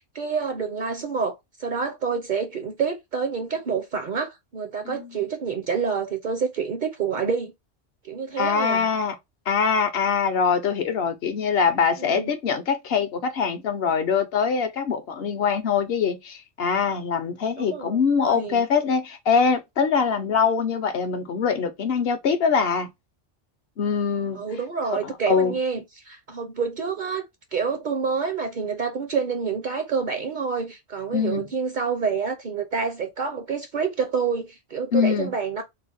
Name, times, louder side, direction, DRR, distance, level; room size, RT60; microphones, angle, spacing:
voice 1, 0.0-7.5 8.0-8.9 12.0-12.3 17.6-18.6 24.3-27.2 27.5-35.6, right 5 dB, 50° right, 0.6 m, -28 dB
voice 2, 8.4-9.1 9.5-22.9 23.8-24.4 24.9-25.5 31.1-31.5 34.9-35.3, left 6 dB, 65° left, 0.8 m, -23 dB
3.3 x 2.0 x 3.7 m
omnidirectional pair, 1.2 m